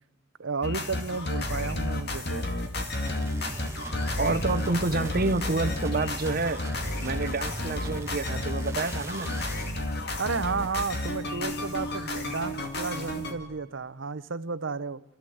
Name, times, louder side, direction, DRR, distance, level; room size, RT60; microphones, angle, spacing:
voice 1, 0.4-2.5 10.2-15.0, right 4 dB, 70° right, 0.8 m, -32 dB
sound 1, 0.6-13.3, left 1 dB, 60° left, 2.4 m, -32 dB
sound 2, 3.0-9.7, right 1 dB, 15° right, 1.3 m, -39 dB
voice 2, 4.2-6.6 7.0-9.4, right 3 dB, 50° right, 1.0 m, -28 dB
28.0 x 14.0 x 7.8 m
head